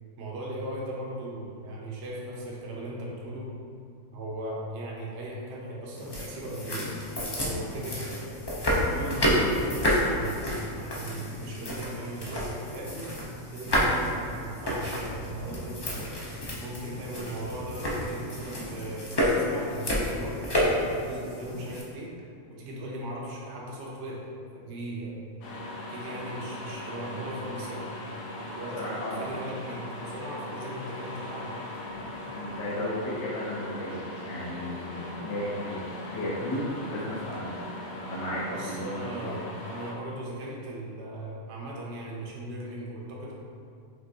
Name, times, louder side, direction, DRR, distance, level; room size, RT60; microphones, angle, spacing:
voice 1, 0.2-3.5 4.1-6.9 7.4-8.2 8.9-10.4 10.7-13.1 13.5-16.1 16.6-22.1 22.5-24.3 24.5-25.2 25.9-27.9 28.5-31.6 38.5-43.3, right 1 dB, 60° right, -4 dB, 1.0 m, -38 dB
sound 1, 6.0-21.8, equal, 45° left, 0.3 m, -30 dB
sound 2, 25.4-39.9, left 1 dB, 85° left, 1.2 m, -39 dB
voice 2, 28.7-29.3 32.3-37.6 38.0-39.3, left 1 dB, 60° left, -6 dB, 1.0 m, -34 dB
5.3 x 3.1 x 2.6 m, 2.3 s
omnidirectional pair, 1.4 m